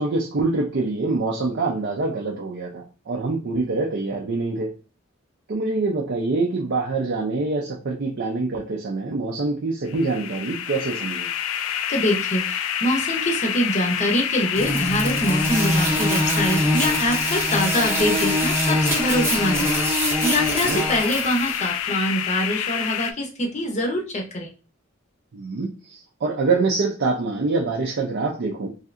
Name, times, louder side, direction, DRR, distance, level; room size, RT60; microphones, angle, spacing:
voice 1, 0.0-4.7 5.5-11.3 20.6-20.8 25.3-28.7, right 3 dB, 60° right, 0.5 m, -25 dB
sound 1, 9.9-23.1, left 9 dB, 85° left, 0.3 m, -27 dB
voice 2, 11.9-19.8 20.2-24.5, equal, 35° left, 0.6 m, -24 dB
sound 2, 14.6-21.7, equal, 15° right, 0.7 m, -24 dB
3.2 x 2.7 x 2.4 m
head